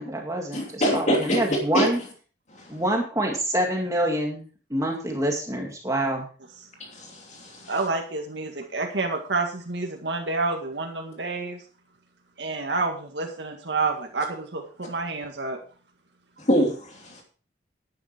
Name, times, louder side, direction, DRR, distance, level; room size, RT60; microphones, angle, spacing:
voice 1, 0.0-2.0 2.7-6.3, right 1 dB, 20° right, 1 dB, 2.0 m, -26 dB
voice 2, 0.5-1.9 6.9-7.6 16.4-17.2, equal, 40° left, 1 dB, 2.8 m, -24 dB
voice 3, 7.7-11.6 12.4-15.6, right 3 dB, 70° right, 2 dB, 1.9 m, -29 dB
11.5 x 9.9 x 4.5 m, 0.39 s
head